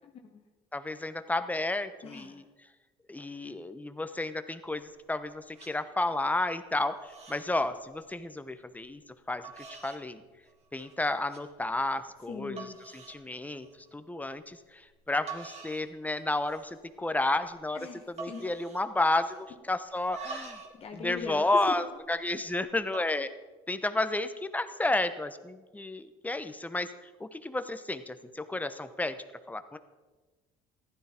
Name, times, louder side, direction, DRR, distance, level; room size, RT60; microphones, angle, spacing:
voice 1, 0.0-0.4 2.0-2.4 12.3-12.8 17.7-18.5 20.7-21.8, left 5 dB, 45° left, 2 dB, 1.3 m, -40 dB
voice 2, 0.7-2.4 3.1-9.0 9.3-10.2 10.7-12.6 13.1-13.7 13.9-17.8 18.2-20.6 21.0-23.3 23.7-29.2 29.5-29.8, left 2 dB, 10° left, 10 dB, 0.9 m, -32 dB
sound 1, 4.6-5.2 5.5-5.7 6.2-6.6 6.8-7.5 7.8-8.1 8.8-8.9 9.4-10.0 10.4-10.9 11.3-11.4 12.0-12.1 12.6-13.2 13.6-13.9 14.9-15.0 15.3-15.9 16.2-16.8 17.1-17.2 17.4-17.7 18.2-19.5 19.9-20.8 21.1-22.3 22.8-23.2, right 4 dB, 45° right, 2.6 m, -46 dB
15.0 x 12.0 x 4.4 m, 1.3 s
supercardioid pair, 90°, 14 cm